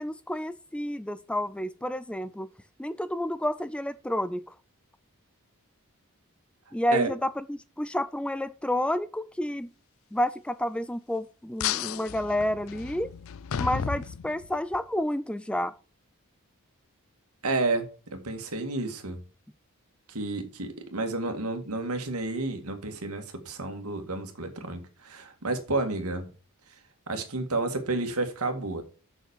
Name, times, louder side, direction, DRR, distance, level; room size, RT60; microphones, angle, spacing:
voice 1, 0.0-2.5 2.8-4.4 6.7-9.7 10.1-13.1 13.6-15.7, left 1 dB, 5° left, 0.4 m, -30 dB
sound 1, 11.6-14.8, left 8 dB, 65° left, 0.4 m, -33 dB
voice 2, 17.4-17.9 18.1-19.2 20.1-26.2 27.1-28.8, right 2 dB, 85° right, 2.0 m, -30 dB
7.1 x 6.4 x 6.4 m
head